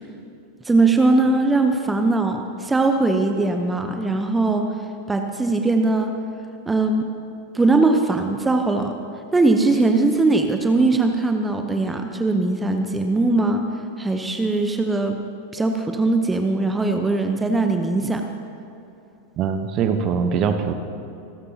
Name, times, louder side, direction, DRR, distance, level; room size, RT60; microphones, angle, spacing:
voice 1, 0.6-4.7 5.1-6.2 6.7-7.1 7.5-9.0 9.3-13.7 14.0-15.2 15.5-18.2, right 3 dB, 10° right, 5 dB, 0.9 m, -20 dB
voice 2, 19.4-20.7, right 6 dB, 35° right, 7 dB, 1.1 m, -22 dB
26.0 x 13.5 x 2.9 m, 2.8 s
figure-of-eight pair, 90°, 0 cm